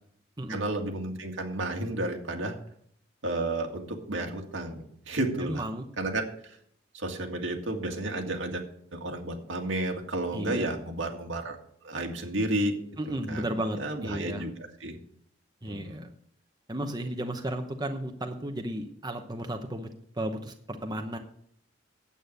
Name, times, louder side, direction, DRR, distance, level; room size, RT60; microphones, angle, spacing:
voice 1, 0.5-2.6 3.2-5.6 6.0-6.6 6.9-8.6 8.9-11.6 11.8-12.7 13.1-15.0 15.7-16.0, right 1 dB, 80° right, 3 dB, 2.0 m, -32 dB
voice 2, 5.4-5.8 10.3-10.7 13.0-14.5 15.6-16.1 16.7-19.9 20.2-21.2, right 1 dB, 20° right, 5 dB, 0.9 m, -34 dB
9.2 x 8.5 x 6.6 m, 0.66 s
head